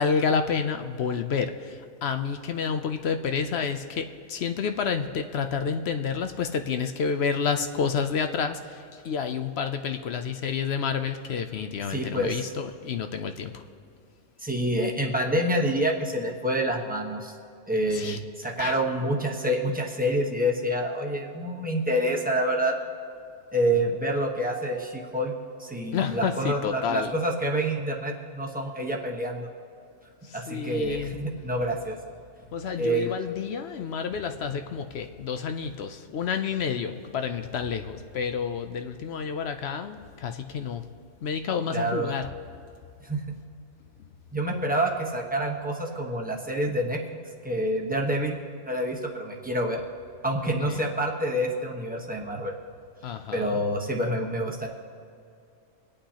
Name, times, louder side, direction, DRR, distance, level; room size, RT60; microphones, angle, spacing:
voice 1, 0.0-13.5 17.9-18.2 18.6-18.7 25.9-27.1 30.3-31.2 32.5-40.8 41.2-42.3 50.7-50.8 53.0-53.6, left 6 dB, 60° left, 7 dB, 0.7 m, -29 dB
voice 2, 11.9-12.5 14.4-17.3 17.7-22.7 23.5-25.3 25.6-29.5 30.3-32.0 32.8-33.3 41.7-42.2 43.0-43.4 44.3-47.0 47.4-49.8 50.2-52.5 53.3-54.7, right 1 dB, 5° right, -1 dB, 1.0 m, -27 dB
24.0 x 8.6 x 2.9 m, 2.5 s
omnidirectional pair, 1.4 m